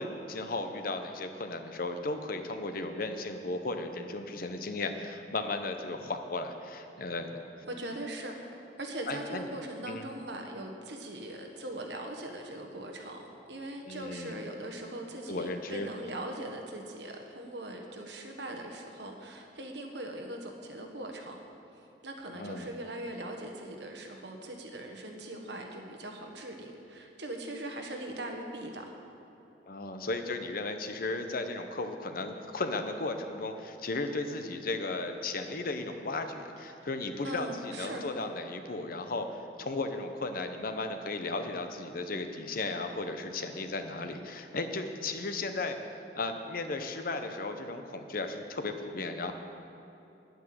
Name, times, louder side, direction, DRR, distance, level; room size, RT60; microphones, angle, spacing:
voice 1, 0.0-7.4 9.1-9.5 9.9-10.1 13.9-14.3 15.3-15.9 22.3-22.7 29.7-39.3 39.6-45.8 46.1-49.3, left 3 dB, 55° left, 7 dB, 0.9 m, -35 dB
voice 2, 7.7-8.3 8.8-21.4 22.0-28.8 36.7-36.9 37.2-38.1, right 1 dB, 75° right, 3 dB, 1.5 m, -40 dB
10.5 x 9.2 x 7.7 m, 2.9 s
head